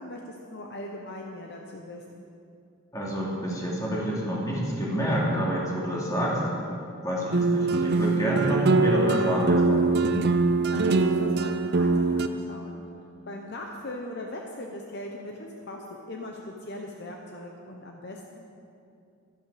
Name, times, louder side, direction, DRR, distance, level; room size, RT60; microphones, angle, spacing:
voice 1, 0.0-2.3 10.7-12.8 13.3-18.5, left 1 dB, 50° left, 1 dB, 0.9 m, -40 dB
voice 2, 2.9-6.4 7.0-9.9, equal, 15° left, -5 dB, 2.6 m, -27 dB
sound 1, 7.3-12.3, right 3 dB, 50° right, 0.6 m, -23 dB
13.0 x 12.0 x 5.0 m, 2.5 s
head